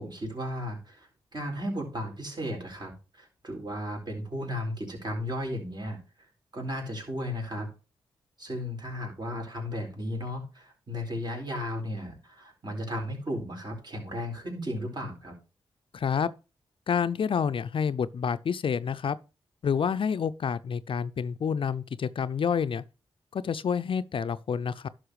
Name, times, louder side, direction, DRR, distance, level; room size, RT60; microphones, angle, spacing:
voice 1, 0.0-6.0 6.5-7.7 8.4-15.3, equal, 45° right, 4.3 m, -35 dB
voice 2, 15.9-16.3 16.9-19.2 19.6-22.8 23.3-24.9, left 7 dB, 60° left, 0.5 m, -28 dB
11.5 x 6.0 x 3.2 m
supercardioid pair, 45°, 10 cm